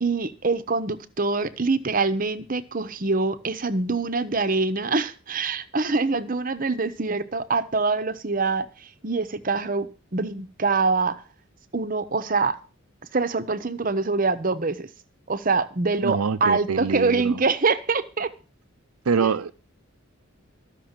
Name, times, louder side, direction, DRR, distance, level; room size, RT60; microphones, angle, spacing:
voice 1, 0.0-11.2 11.7-12.6 13.1-14.9 15.3-18.3 19.2-19.3, right 3 dB, 40° right, 0.9 m, -25 dB
voice 2, 16.0-17.4 19.1-19.5, right 5 dB, 90° right, 0.6 m, -25 dB
13.5 x 6.2 x 7.3 m
head